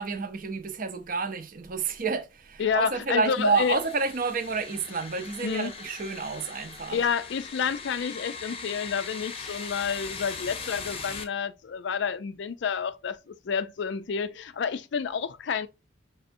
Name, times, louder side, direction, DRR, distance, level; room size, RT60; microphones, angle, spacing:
voice 1, 0.0-7.1, right 4 dB, 45° right, 0.6 m, -29 dB
voice 2, 2.6-3.8 5.4-5.7 6.9-15.7, left 6 dB, 60° left, 0.4 m, -29 dB
sound 1, 3.3-11.2, left 5 dB, 30° left, 0.7 m, -40 dB
5.4 x 3.3 x 2.6 m
head